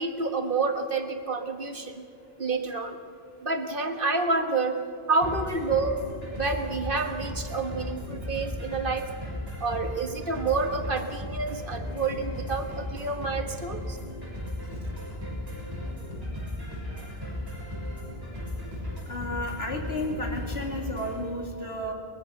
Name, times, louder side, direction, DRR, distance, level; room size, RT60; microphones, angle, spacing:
voice 1, 0.0-2.1 2.4-3.0 3.4-4.8 5.1-6.0 6.4-9.1 9.6-14.0, right 3 dB, 55° right, 6 dB, 1.7 m, -28 dB
sound 1, 5.2-21.2, left 1 dB, 20° right, 7.0 m, -36 dB
voice 2, 19.1-21.9, left 1 dB, 80° left, 1 dB, 3.2 m, -32 dB
23.0 x 21.0 x 6.6 m, 2.6 s
omnidirectional pair, 1.0 m